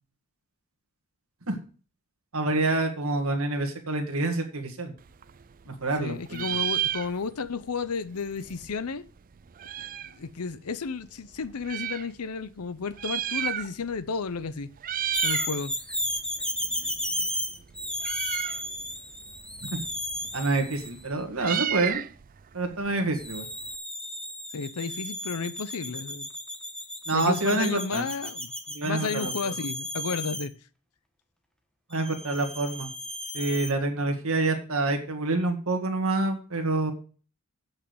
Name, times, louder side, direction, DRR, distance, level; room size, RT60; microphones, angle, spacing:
voice 1, 2.3-4.9 5.7-6.4 19.7-19.8 20.3-22.0 22.5-23.5 27.1-28.1 28.7-29.5 31.9-32.9 33.3-36.9, right 2 dB, 70° right, 1.9 m, -27 dB
Meow, 5.0-6.0 6.3-7.5 7.8-7.9 8.1-10.2 10.9-12.1 12.8-14.0 14.3-14.5 14.8-15.5 15.9-23.8, right 11 dB, 40° right, 0.4 m, -33 dB
voice 2, 5.7-9.1 10.0-14.7 15.2-15.7 24.5-26.3 27.1-28.5 28.8-30.5, left 5 dB, 85° left, 0.7 m, -32 dB
sound 1, 15.1-21.0 23.1-30.5 32.0-33.7, equal, 5° left, 1.2 m, -34 dB
8.4 x 6.4 x 7.9 m
head